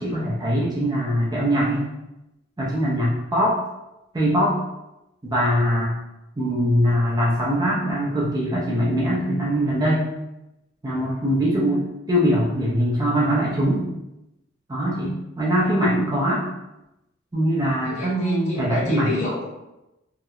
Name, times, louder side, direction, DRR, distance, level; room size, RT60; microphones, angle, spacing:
voice 1, 0.0-1.8 2.6-3.6 4.1-4.5 5.2-6.0 6.4-10.1 10.8-13.8 14.7-16.4 17.3-19.1, equal, 20° right, -6 dB, 0.4 m, -22 dB
voice 2, 17.8-19.5, left 2 dB, 35° left, -4 dB, 0.6 m, -30 dB
2.8 x 2.0 x 2.3 m, 0.93 s
head